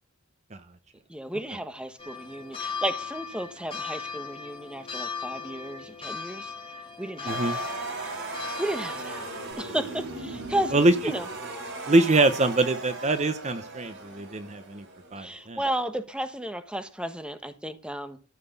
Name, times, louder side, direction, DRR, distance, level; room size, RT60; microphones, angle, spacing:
voice 1, 1.1-6.5 7.0-7.5 8.1-9.3 9.6-10.7 11.0-11.3 15.2-18.2, right 1 dB, 5° right, 1.3 m, -33 dB
sound 1, 2.0-9.5, left 5 dB, 25° left, 2.9 m, -37 dB
voice 2, 7.3-7.6 10.7-10.9 11.9-14.8 15.1-15.6, right 2 dB, 30° right, 0.9 m, -23 dB
sound 2, 7.3-15.4, right 3 dB, 60° right, 5.0 m, -37 dB
14.0 x 6.1 x 7.2 m
head